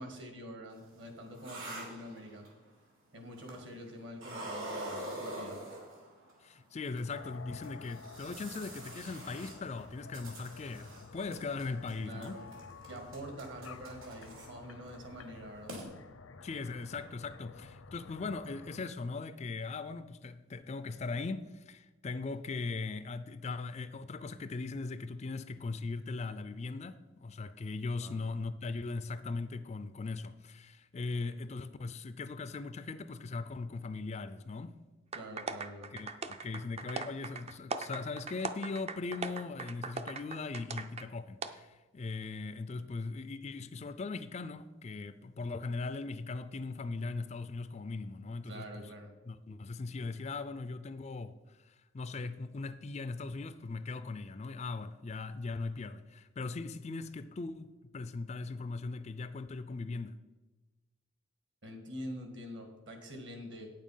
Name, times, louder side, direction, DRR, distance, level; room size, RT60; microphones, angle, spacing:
voice 1, 0.0-2.4 3.1-5.6 12.0-12.5 12.9-15.8 28.0-28.3 35.1-35.9 48.5-49.1 61.6-63.7, equal, 60° right, 1.8 m, -46 dB
sound 1, 0.8-2.7 3.4-3.9 4.2-6.3 7.0-7.1 7.6-11.0 11.3-11.9 12.2-14.5 14.9-15.1 15.4-15.5 15.7-15.8, right 1 dB, 75° right, 2.7 m, -45 dB
voice 2, 6.4-12.4 16.4-34.8 35.9-48.9 49.3-60.2, left 3 dB, 30° left, 0.4 m, -39 dB
sound 2, 7.1-18.8, left 4 dB, 80° left, 0.7 m, -51 dB
sound 3, 35.1-41.1 41.4-41.5, right 4 dB, 30° right, 0.4 m, -40 dB
9.1 x 7.2 x 5.6 m
head